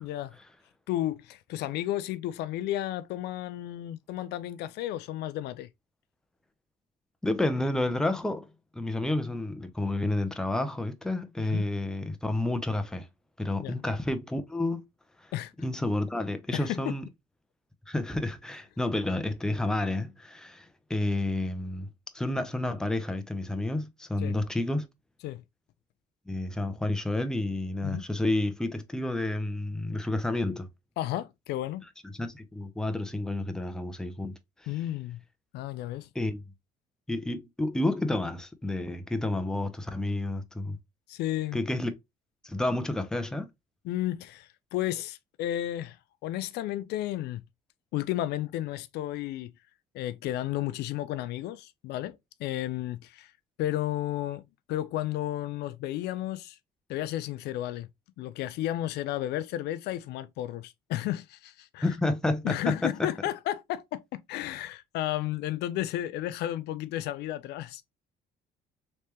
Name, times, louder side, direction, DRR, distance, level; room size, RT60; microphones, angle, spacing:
voice 1, 0.0-0.4 0.9-5.7 11.4-11.7 13.6-13.8 15.3-15.5 16.5-16.9 24.2-24.4 25.2-25.4 27.8-28.0 31.0-31.8 34.7-35.2 35.5-36.1 41.1-41.6 43.8-46.0 46.2-47.4 47.9-49.5 49.9-53.3 53.6-56.6 56.9-57.9 58.2-61.9 62.4-67.8, left 13 dB, 75° left, 0.4 m, -33 dB
voice 2, 7.2-8.5 8.7-13.1 13.4-14.8 15.6-17.0 17.9-21.9 22.1-24.9 26.3-30.7 32.1-34.4 36.1-36.4 37.1-40.8 41.5-41.9 42.4-43.5 61.8-63.1, left 2 dB, 5° left, 0.5 m, -30 dB
3.3 x 3.2 x 2.9 m
cardioid pair, 110°, 17 cm